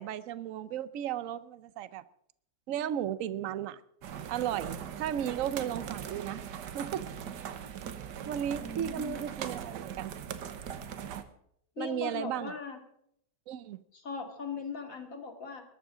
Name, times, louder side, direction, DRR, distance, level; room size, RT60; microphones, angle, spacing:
voice 1, 0.0-2.0 2.7-3.8 4.3-6.4 6.7-7.0 8.3-10.1 11.8-12.6 13.5-13.8, right 10 dB, 60° right, 15 dB, 1.0 m, -35 dB
sound 1, 4.0-11.2, right 8 dB, 90° right, 1.6 m, -40 dB
voice 2, 8.6-9.2 11.8-12.8 13.9-15.6, left 5 dB, 55° left, 4 dB, 2.8 m, -39 dB
21.0 x 13.0 x 3.8 m, 0.71 s
omnidirectional pair, 1.8 m